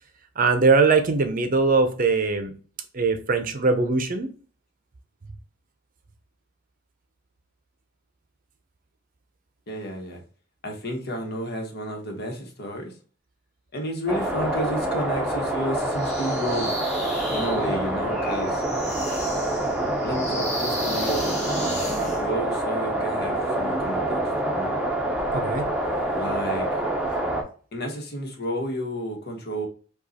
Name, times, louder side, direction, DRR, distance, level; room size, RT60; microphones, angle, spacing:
voice 1, 0.4-2.5 2.9-4.3 25.3-25.7, right 4 dB, 45° right, 0.6 m, -21 dB
voice 2, 9.7-10.2 10.6-12.9 13.7-16.8 17.3-18.6 20.0-21.4 22.0-24.2 24.5-24.8 26.1-26.7 27.7-29.7, equal, 55° left, 1.1 m, -31 dB
sound 1, 14.1-27.4, right 1 dB, 5° right, 0.8 m, -26 dB
sound 2, 15.9-22.2, equal, 35° left, 1.5 m, -35 dB
5.2 x 2.4 x 4.1 m
head